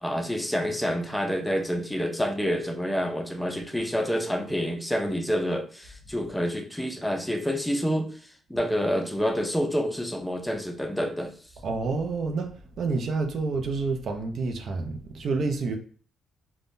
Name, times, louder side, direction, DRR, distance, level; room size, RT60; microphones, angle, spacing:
voice 1, 0.0-8.2 8.5-11.3, equal, 5° left, 0.5 m, -28 dB
voice 2, 11.6-15.8, right 3 dB, 60° right, 0.5 m, -29 dB
3.5 x 2.1 x 2.6 m
cardioid pair, 90°, 0 cm